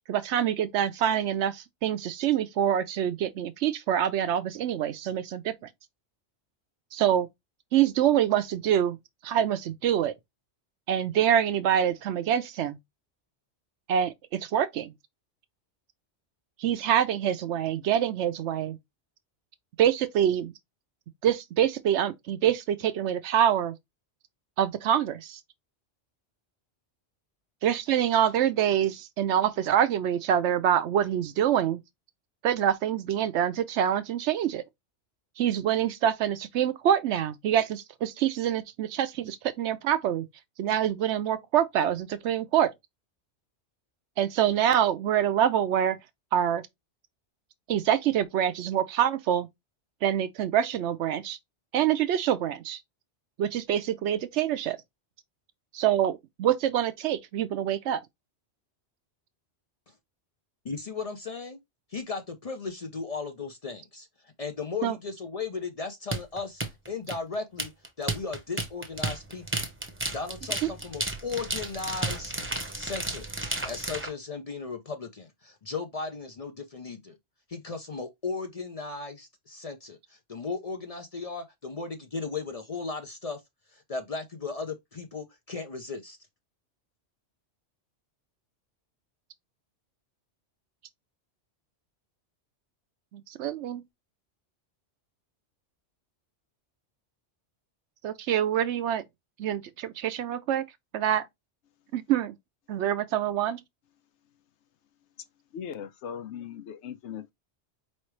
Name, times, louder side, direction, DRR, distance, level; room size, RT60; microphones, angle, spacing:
voice 1, 0.1-5.5 6.9-7.3 7.7-9.0 9.2-10.1 10.9-12.8 13.9-14.9 16.6-18.8 19.8-20.5 21.2-23.7 24.6-25.4 27.6-31.8 32.4-34.6 35.4-40.3 40.6-42.7 44.2-46.0 46.3-46.6 47.7-49.5 50.0-51.4 51.7-52.8 53.4-54.8 55.7-58.0 64.8-65.0 93.1-93.8 98.0-99.0 99.4-100.6 100.9-101.2 101.9-102.3 102.7-103.6, right 10 dB, 75° right, 0.9 m, -25 dB
voice 2, 60.6-61.6 61.9-66.6 66.9-67.7 68.0-69.6 70.1-72.3 72.7-73.3 73.6-77.2 77.5-83.4 83.7-86.2, left 4 dB, 45° left, 0.5 m, -36 dB
sound 1, 66.1-74.1, right 2 dB, 10° right, 0.8 m, -32 dB
voice 3, 105.5-107.3, left 8 dB, 75° left, 0.9 m, -39 dB
4.7 x 3.2 x 3.1 m
omnidirectional pair, 1.2 m